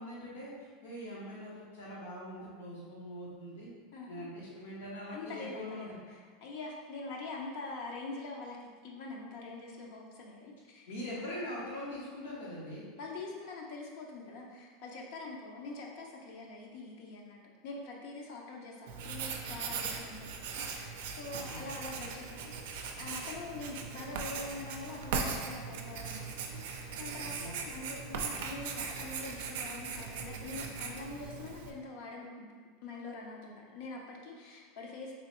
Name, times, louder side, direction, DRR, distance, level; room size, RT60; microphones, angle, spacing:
voice 1, 0.0-3.7 4.1-6.0 10.9-12.8 21.3-21.7 27.4-27.6, left 1 dB, 90° left, -6 dB, 0.8 m, -42 dB
voice 2, 3.9-4.3 5.1-10.9 13.0-32.5 32.8-35.1, left 3 dB, 65° left, -1 dB, 0.5 m, -44 dB
Writing, 18.9-31.7, right 5 dB, 75° right, 0.4 m, -39 dB
3.1 x 3.0 x 3.0 m, 1.6 s
supercardioid pair, 125°, 0 cm